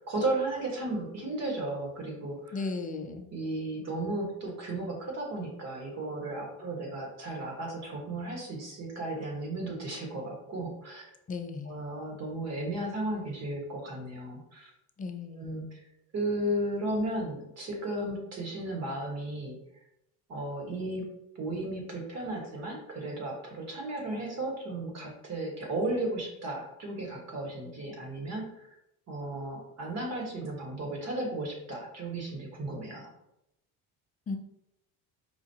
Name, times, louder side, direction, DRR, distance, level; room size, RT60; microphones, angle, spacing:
voice 1, 0.1-2.7 3.3-11.1 11.6-14.7 15.3-15.8 16.1-19.6 20.3-21.0 21.3-28.8 29.1-33.1, right 1 dB, 45° right, 0 dB, 1.3 m, -34 dB
voice 2, 2.5-3.3 11.3-11.7 15.0-15.5 34.3-34.4, left 3 dB, 20° left, 6 dB, 0.4 m, -35 dB
5.0 x 2.4 x 2.7 m, 0.85 s
supercardioid pair, 105°, 38 cm